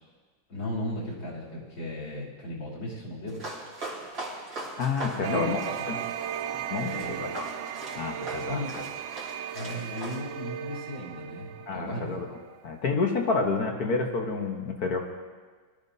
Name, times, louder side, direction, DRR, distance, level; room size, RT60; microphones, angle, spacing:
voice 1, 0.5-3.4 5.2-5.8 6.9-7.4 8.5-8.8 9.5-12.3, left 1 dB, 70° left, -6 dB, 3.8 m, -35 dB
sound 1, 3.3-10.2, right 2 dB, 45° right, 3.0 m, -41 dB
voice 2, 4.8-6.0 6.7-7.5 8.0-8.8 11.7-12.3 12.6-15.1, left 4 dB, 50° left, 2 dB, 1.5 m, -29 dB
sound 2, 5.2-12.8, right 10 dB, 70° right, 1.2 m, -36 dB
22.0 x 12.5 x 2.7 m, 1.4 s
omnidirectional pair, 2.2 m